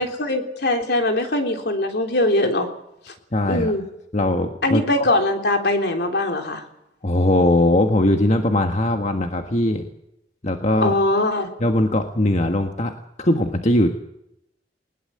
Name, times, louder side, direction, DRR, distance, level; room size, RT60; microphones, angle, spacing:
voice 1, 0.0-2.7 3.1-3.2 3.5-3.8 4.6-6.6 10.8-11.5, left 1 dB, 65° left, 4 dB, 3.6 m, -21 dB
voice 2, 3.3-3.7 4.1-5.1 7.0-9.9 10.4-11.0 11.6-12.9 13.2-13.9, left 1 dB, 40° left, 5 dB, 1.5 m, -20 dB
20.5 x 20.5 x 7.8 m, 0.82 s
head